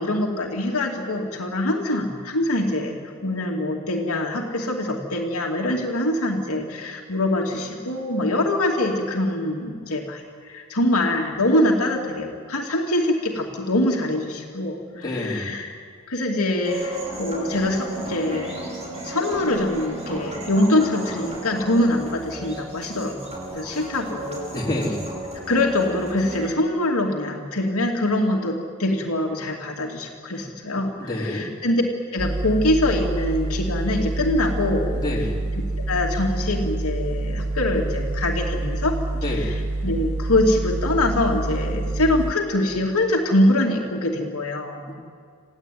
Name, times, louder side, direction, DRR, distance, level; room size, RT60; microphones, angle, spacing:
voice 1, 0.0-3.0 3.2-15.8 16.1-18.6 19.0-23.2 23.5-24.6 25.5-31.8 32.1-35.0 35.9-39.0 39.4-39.5 39.8-44.9, left 1 dB, 70° left, 0 dB, 2.6 m, -24 dB
voice 2, 15.0-15.5 24.5-25.0 31.0-31.5 34.9-35.4 39.2-39.6 44.9-45.0, left 1 dB, 20° left, -3 dB, 4.2 m, -27 dB
sound 1, 16.6-26.5, right 1 dB, 30° right, 5.4 m, -34 dB
sound 2, 32.2-42.3, right 2 dB, 85° right, 1.7 m, -27 dB
27.5 x 16.0 x 9.4 m, 2.1 s
head